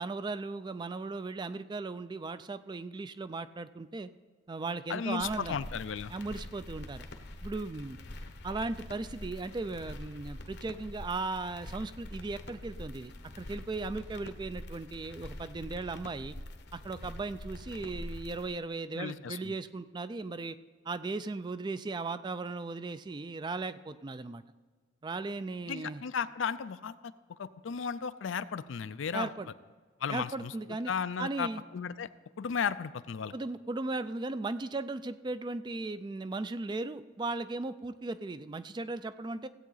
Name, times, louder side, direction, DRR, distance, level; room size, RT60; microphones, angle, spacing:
voice 1, 0.0-4.1 4.5-5.6 6.1-7.0 7.4-8.0 8.4-16.4 16.7-20.6 20.9-24.4 25.0-26.0 29.1-29.5 30.1-30.9 31.2-31.6 33.3-39.5, right 3 dB, 20° right, 13 dB, 0.3 m, -37 dB
voice 2, 4.9-6.1 18.9-19.5 25.7-29.3 30.0-30.5 30.9-32.1 32.4-33.3, left 6 dB, 75° left, 14 dB, 0.4 m, -35 dB
sound 1, 5.2-18.5, left 1 dB, 55° left, 0.8 m, -45 dB
16.5 x 8.3 x 3.9 m, 1.5 s
head